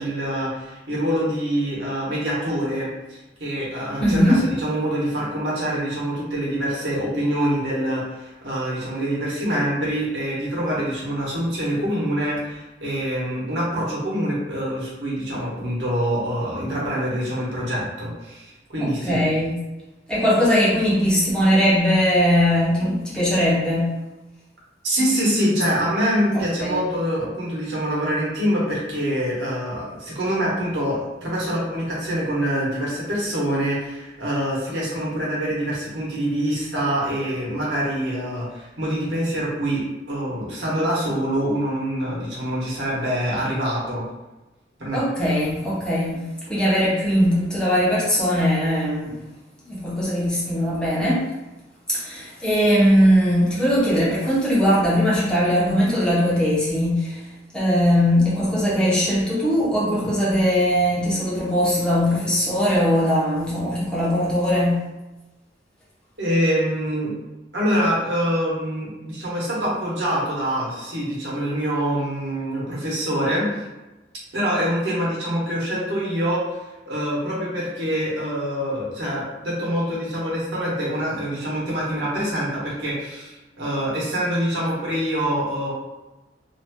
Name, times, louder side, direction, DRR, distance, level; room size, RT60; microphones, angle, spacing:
voice 1, 0.0-19.2 24.8-44.0 44.8-45.0 66.2-67.1 67.5-73.6 74.3-76.4 76.9-85.7, equal, 70° right, -6 dB, 1.1 m, -25 dB
voice 2, 4.0-4.4 19.0-19.5 20.1-23.9 26.6-26.8 44.9-46.2 46.5-49.2 49.6-51.2 51.9-57.2 57.5-64.8, equal, 5° left, -8 dB, 0.8 m, -20 dB
2.9 x 2.7 x 2.2 m, 1.0 s
head